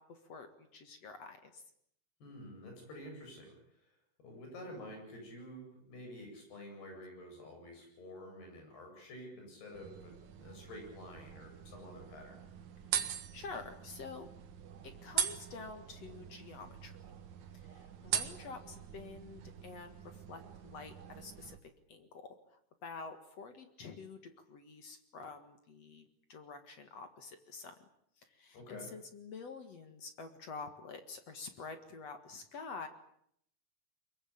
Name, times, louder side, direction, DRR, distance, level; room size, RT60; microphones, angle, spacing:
voice 1, 0.0-1.6 13.3-14.3 14.8-16.9 17.5-27.7 28.2-32.9, left 4 dB, 50° left, 8 dB, 2.3 m, -48 dB
voice 2, 2.2-3.9 4.2-12.4 18.0-18.2 28.5-28.9, left 1 dB, 80° left, 3 dB, 10.0 m, -49 dB
sound 1, 9.7-21.6, right 9 dB, 55° right, 2.5 m, -42 dB
23.0 x 22.0 x 8.7 m, 0.70 s
omnidirectional pair, 4.7 m